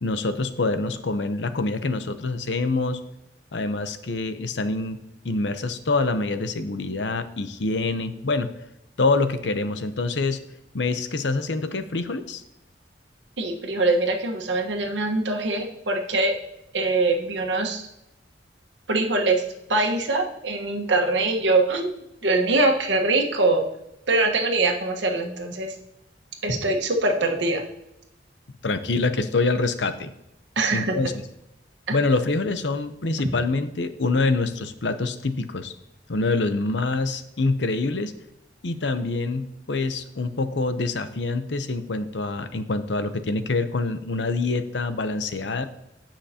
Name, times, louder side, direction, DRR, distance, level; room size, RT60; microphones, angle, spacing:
voice 1, 0.0-3.0 3.5-8.5 9.0-10.4 10.7-12.4 28.6-30.1 30.7-31.1 31.9-35.7 36.1-38.1 38.6-45.7, left 3 dB, 75° left, 10 dB, 0.8 m, -25 dB
voice 2, 13.4-16.3 16.7-17.9 18.9-19.4 19.7-23.6 24.1-25.7 26.4-27.6 30.6-30.9, right 2 dB, 85° right, 3 dB, 1.4 m, -23 dB
16.5 x 5.8 x 2.9 m, 0.87 s
head